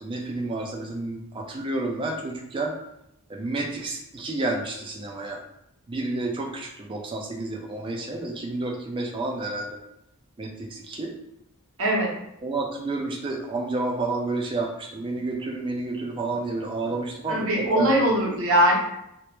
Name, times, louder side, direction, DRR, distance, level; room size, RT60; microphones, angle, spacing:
voice 1, 0.0-2.7 3.3-5.4 5.9-9.7 10.4-11.1 12.4-18.0, right 2 dB, 25° right, 2 dB, 0.3 m, -30 dB
voice 2, 11.8-12.1 17.3-18.7, equal, 70° right, -2 dB, 0.7 m, -21 dB
2.1 x 2.1 x 2.9 m, 0.80 s
head